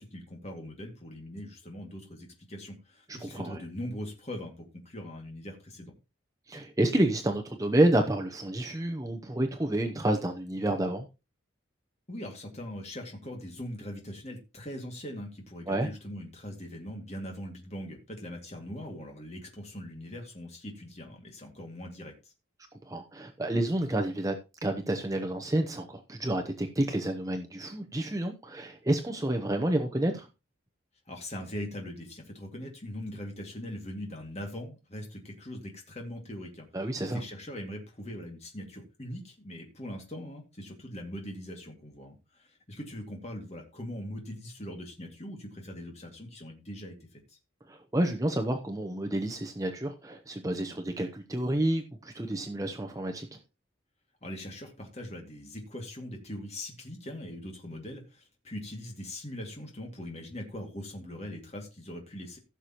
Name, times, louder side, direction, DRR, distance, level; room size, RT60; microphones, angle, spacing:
voice 1, 0.0-5.9 12.1-22.3 31.1-36.7 37.1-47.4 54.2-62.4, left 1 dB, 35° left, 2.2 m, -41 dB
voice 2, 3.1-3.6 6.5-11.1 15.7-15.9 22.8-24.4 24.6-30.3 36.7-37.2 47.7-53.3, right 1 dB, 15° right, 0.8 m, -29 dB
15.5 x 6.7 x 3.0 m
head